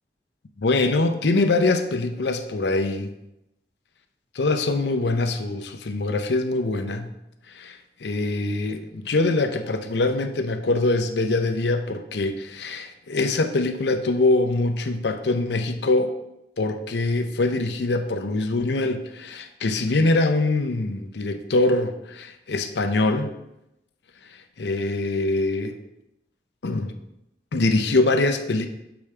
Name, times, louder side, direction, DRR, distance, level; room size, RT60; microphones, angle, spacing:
voice 1, 0.6-3.1 4.3-7.1 7.5-16.1 16.6-23.3 24.3-25.8 26.6-26.9 27.5-28.7, left 2 dB, 80° left, 7 dB, 0.6 m, -23 dB
7.0 x 4.9 x 3.2 m, 0.87 s
head